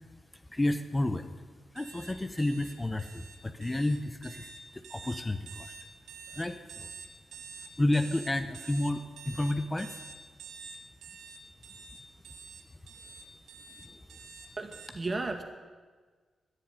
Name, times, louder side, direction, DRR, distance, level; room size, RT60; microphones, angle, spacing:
voice 1, 0.5-1.3 1.7-5.7 6.3-6.9 7.8-10.0 13.8-14.0, left 1 dB, 20° left, 8 dB, 0.8 m, -31 dB
sound 1, 1.8-14.9, right 5 dB, 90° right, 1.5 m, -47 dB
voice 2, 14.6-15.4, right 3 dB, 35° right, 4 dB, 2.0 m, -34 dB
11.0 x 9.7 x 10.0 m, 1.5 s
cardioid pair, 80°, 0 cm